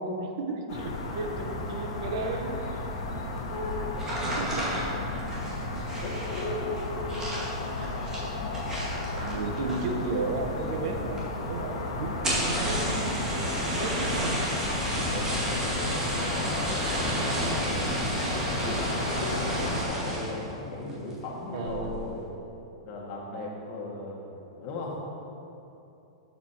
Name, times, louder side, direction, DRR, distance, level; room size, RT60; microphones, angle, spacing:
voice 1, 0.0-2.8 4.0-5.0 8.0-8.1 9.1-14.4 21.5-22.0, right 3 dB, 60° right, 3 dB, 1.1 m, -34 dB
sound 1, 0.7-19.8, left 2 dB, 75° left, 1.6 m, -34 dB
voice 2, 3.5-3.9 6.0-7.3 15.1-18.1 18.4-22.2 22.8-24.2 24.5-25.0, left 2 dB, 40° left, -3 dB, 1.8 m, -37 dB
sound 2, 3.9-10.1 10.4-10.9 11.2-11.3 11.5-11.6 12.1-20.4 20.9-21.2 21.6-22.0, right 1 dB, 15° right, 2.1 m, -31 dB
11.5 x 7.4 x 2.9 m, 2.8 s
supercardioid pair, 155°, 3 cm